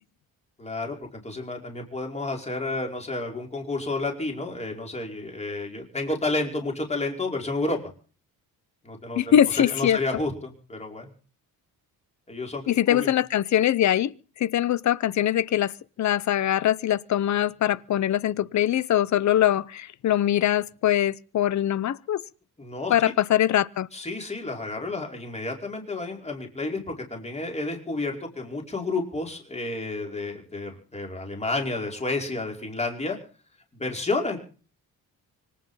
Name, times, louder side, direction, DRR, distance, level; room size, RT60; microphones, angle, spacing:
voice 1, 0.6-7.8 8.8-11.1 12.3-13.1 22.6-22.9 23.9-33.2 33.7-34.4, left 2 dB, 15° left, 5.1 m, -31 dB
voice 2, 9.2-10.0 12.7-15.7 16.0-22.2 22.9-23.9, left 11 dB, 50° left, 0.8 m, -22 dB
25.0 x 9.4 x 5.7 m
cardioid pair, 140°, 37 cm